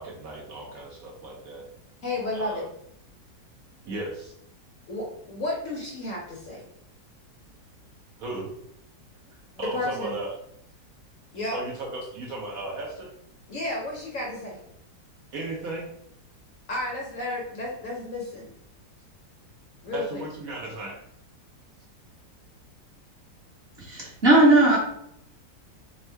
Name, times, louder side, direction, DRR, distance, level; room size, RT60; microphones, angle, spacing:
voice 1, 0.0-1.7 2.3-2.7 3.8-4.3 8.2-8.5 9.3-10.3 11.5-13.1 15.3-15.9 19.9-21.0, right 2 dB, 60° right, -3 dB, 1.0 m, -35 dB
voice 2, 2.0-2.7 4.9-6.6 9.7-10.2 11.3-11.6 13.5-14.7 16.7-18.5 19.8-20.0, left 2 dB, 55° left, -3 dB, 1.0 m, -32 dB
voice 3, 23.9-24.8, right 2 dB, 40° right, -5 dB, 1.2 m, -17 dB
3.5 x 2.1 x 4.4 m, 0.72 s
omnidirectional pair, 1.9 m